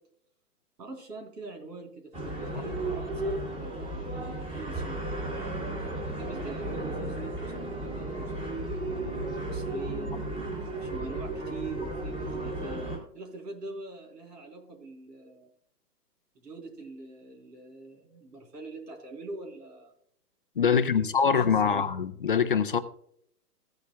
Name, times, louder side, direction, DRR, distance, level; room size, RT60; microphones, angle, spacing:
voice 1, 0.8-5.0 6.2-12.8 13.1-15.5 16.4-19.9 20.7-21.9, right 3 dB, 75° right, 1 dB, 3.7 m, -44 dB
sound 1, 2.1-13.0, right 2 dB, 15° right, 2.3 m, -34 dB
voice 2, 20.6-22.8, left 6 dB, 35° left, 11 dB, 0.5 m, -24 dB
15.5 x 8.3 x 2.3 m, 0.67 s
hypercardioid pair, 155°, 49 cm